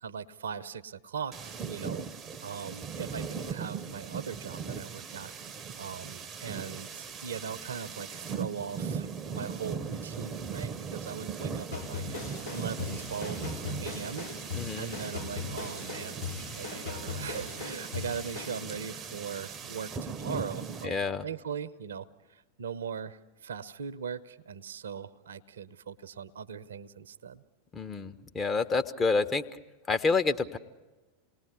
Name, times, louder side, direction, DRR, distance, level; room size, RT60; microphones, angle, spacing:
voice 1, 0.0-2.0 2.4-5.3 5.8-14.3 14.7-21.0 21.2-27.4, right 7 dB, 65° right, 15 dB, 0.8 m, -40 dB
sound 1, 1.3-20.9, right 6 dB, 25° right, 0.9 m, -39 dB
sound 2, 11.7-18.6, left 4 dB, 80° left, 5.3 m, -39 dB
voice 2, 14.5-14.9 20.8-21.2 27.7-29.4 29.9-30.6, left 4 dB, 20° left, 6 dB, 1.1 m, -28 dB
28.5 x 20.0 x 8.1 m, 1.2 s
figure-of-eight pair, 90°, 0 cm